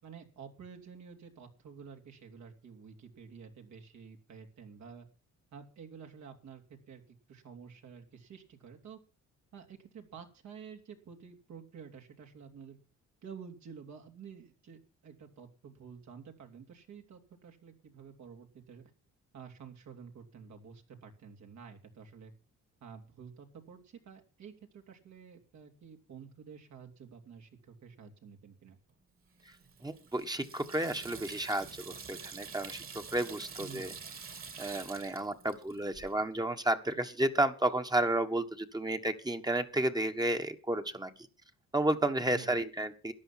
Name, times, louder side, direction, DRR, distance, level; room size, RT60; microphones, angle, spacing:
voice 1, 0.0-5.1 5.5-6.6 6.9-9.0 9.5-12.8 13.2-18.9 19.3-22.3 22.8-28.8 33.6-34.0 42.2-42.5, right 6 dB, 65° right, 3 dB, 3.2 m, -50 dB
Water tap faucet / Sink (filling or washing), 29.4-36.1, right 5 dB, 45° right, 3.0 m, -47 dB
voice 2, 29.8-31.7 32.1-33.9 34.6-41.1 41.7-43.1, right 1 dB, 15° right, 6 dB, 1.5 m, -32 dB
13.5 x 10.0 x 5.8 m, 0.33 s
cardioid pair, 90°, 30 cm